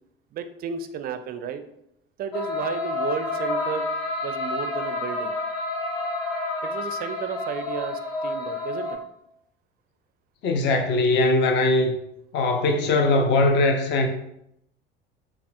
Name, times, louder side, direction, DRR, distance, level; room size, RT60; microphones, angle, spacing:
voice 1, 0.3-1.6 2.2-3.8 4.2-5.3 6.6-9.0, right 7 dB, 30° right, 0.4 m, -33 dB
sound 1, 2.3-9.0, left 2 dB, 50° left, 1.3 m, -29 dB
voice 2, 10.4-11.9 12.3-14.1, left 2 dB, 35° left, 0.6 m, -20 dB
6.6 x 2.3 x 2.5 m
figure-of-eight pair, 60°, 30 cm